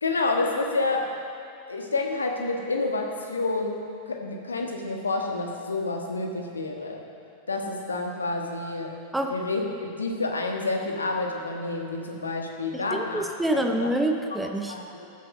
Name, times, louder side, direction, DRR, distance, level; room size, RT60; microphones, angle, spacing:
voice 1, 0.0-1.1 1.7-7.0 7.5-8.9 9.3-13.3 13.7-13.9 14.7-15.1, left 3 dB, 75° left, 2 dB, 1.4 m, -29 dB
voice 2, 12.7-14.7, right 1 dB, 5° right, 3 dB, 0.8 m, -27 dB
15.0 x 7.7 x 6.1 m, 2.5 s
figure-of-eight pair, 90°, 0 cm